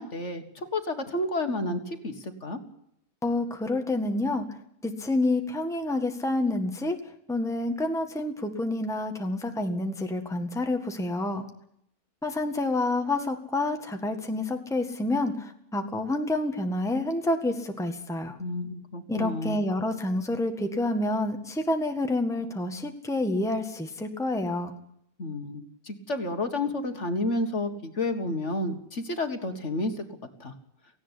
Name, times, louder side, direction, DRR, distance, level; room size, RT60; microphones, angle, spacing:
voice 1, 0.0-2.6 18.4-19.6 25.2-30.0 30.4-30.5, left 2 dB, 50° left, 7 dB, 2.0 m, -31 dB
voice 2, 3.2-4.5 4.8-7.0 7.3-11.5 12.2-18.4 19.1-24.7, left 2 dB, ahead, 5 dB, 1.7 m, -28 dB
18.0 x 16.0 x 10.0 m, 0.72 s
omnidirectional pair, 1.6 m